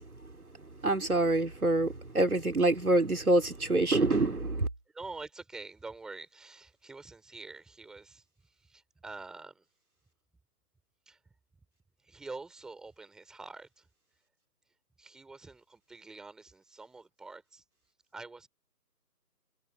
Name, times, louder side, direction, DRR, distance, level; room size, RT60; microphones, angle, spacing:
voice 1, 0.8-1.9 2.1-4.7, right 2 dB, 60° right, 3.4 m, -26 dB
voice 2, 4.9-8.2 8.6-9.6 11.1-11.2 12.0-13.9 15.0-17.6 18.1-18.5, right 3 dB, ahead, 6.0 m, -46 dB
figure-of-eight pair, 160°, 49 cm